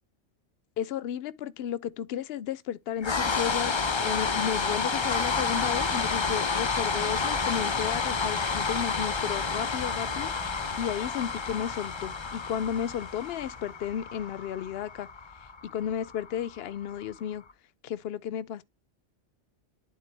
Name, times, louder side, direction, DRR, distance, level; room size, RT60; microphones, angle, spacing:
voice 1, 0.8-3.7 4.0-10.3 10.8-15.1 15.7-17.4 17.8-18.6, left 9 dB, 65° left, 0.8 m, -33 dB
sound 1, 3.0-17.1, left 4 dB, 35° left, 0.5 m, -30 dB
11.0 x 3.8 x 3.3 m
omnidirectional pair, 1.2 m